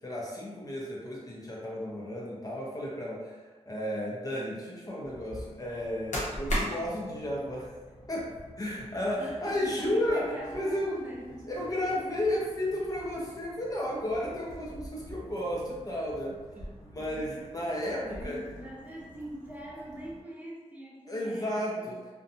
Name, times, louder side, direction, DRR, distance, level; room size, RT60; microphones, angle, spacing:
voice 1, 0.0-3.4 3.7-7.7 8.1-8.3 8.6-10.2 10.5-11.0 11.5-16.4 16.8-18.4 21.1-22.0, left 1 dB, 30° left, -4 dB, 0.5 m, -33 dB
sound 1, 5.0-20.2, equal, 80° left, 0.8 m, -42 dB
voice 2, 9.2-11.5 16.5-17.3 18.0-22.0, right 1 dB, 15° right, -5 dB, 0.6 m, -43 dB
sound 2, 12.4-13.4 14.1-14.4 15.4-15.9 16.7-17.5 18.1-18.8, left 1 dB, 70° right, 0.8 m, -55 dB
2.6 x 2.1 x 2.7 m, 1.3 s
wide cardioid pair, 120°, 12 cm